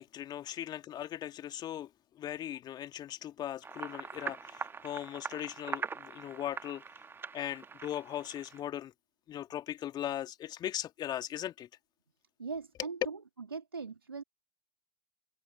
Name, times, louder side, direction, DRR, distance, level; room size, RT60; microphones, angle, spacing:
voice 1, 0.0-6.8 7.3-8.9 9.3-11.7, left 11 dB, 35° left, 2.2 m, -39 dB
sound 1, 3.6-8.6, right 5 dB, 20° right, 1.3 m, -42 dB
voice 2, 12.4-13.2 13.5-14.2, right 4 dB, 85° right, 1.7 m, -40 dB
figure-of-eight pair, 80°, 12 cm